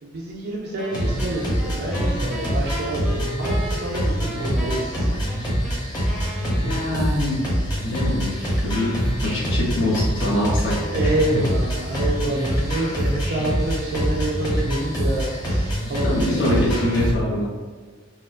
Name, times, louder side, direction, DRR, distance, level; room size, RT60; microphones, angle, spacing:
voice 1, 0.0-3.0 3.4-5.6 10.9-16.9, right 1 dB, 50° right, -4 dB, 0.4 m, -28 dB
Wind instrument woodwind instrument, 0.8-7.3, right 1 dB, ahead, 0.5 m, -36 dB
sound 1, 0.9-17.1, equal, 20° left, 0.8 m, -25 dB
voice 2, 6.6-7.5 7.8-8.3 8.6-11.1 16.0-17.5, left 1 dB, 70° left, -6 dB, 0.8 m, -24 dB
4.2 x 2.0 x 2.4 m, 1.5 s
head